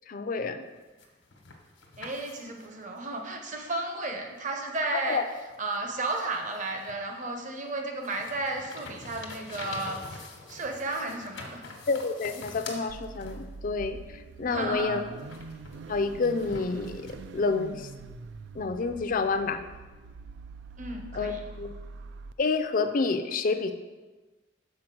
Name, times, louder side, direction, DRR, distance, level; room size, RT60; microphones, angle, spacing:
voice 1, 0.1-0.6 5.0-5.2 11.9-14.0 14.4-15.0 15.9-17.9 18.5-19.6 21.2-21.7 22.4-23.7, left 4 dB, 45° left, 8 dB, 0.5 m, -28 dB
sound 1, 0.7-2.8 4.3-4.4 5.1-7.2 7.6-13.8 14.8-17.1, left 3 dB, 85° left, 1.1 m, -45 dB
voice 2, 2.0-5.2 5.6-11.6 14.5-15.0 20.8-21.5, right 2 dB, 45° right, 2 dB, 0.9 m, -33 dB
Car / Idling / Accelerating revving vroom, 12.9-22.3, right 3 dB, 70° right, 0.3 m, -44 dB
6.4 x 4.4 x 6.0 m, 1.3 s
head